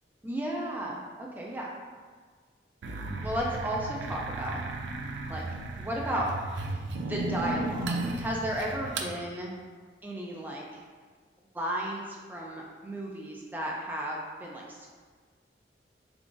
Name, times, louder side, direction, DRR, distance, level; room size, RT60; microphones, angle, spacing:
voice 1, 0.2-1.7 3.2-4.6 5.3-5.4 5.8-6.3 6.7-6.8 7.1-9.5 10.0-10.6 11.5-14.9, right 1 dB, 10° right, -3 dB, 0.4 m, -34 dB
sound 1, 2.8-9.1, right 2 dB, 90° right, 0.4 m, -34 dB
3.7 x 3.5 x 2.4 m, 1.5 s
head